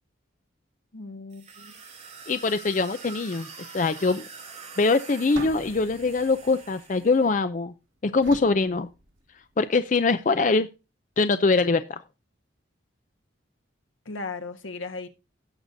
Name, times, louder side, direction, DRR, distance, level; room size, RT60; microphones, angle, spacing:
voice 1, 0.9-1.7 14.0-15.1, left 3 dB, 85° left, 1.4 m, -36 dB
sound 1, 1.3-7.3, right 5 dB, 35° right, 2.9 m, -45 dB
voice 2, 2.3-3.5 3.7-4.2 4.8-7.7 8.0-8.9 9.6-10.7 11.2-12.0, left 3 dB, 40° left, 0.5 m, -23 dB
sound 2, 5.3-7.6 8.2-9.6, right 2 dB, 80° right, 2.1 m, -44 dB
17.0 x 6.6 x 2.6 m
head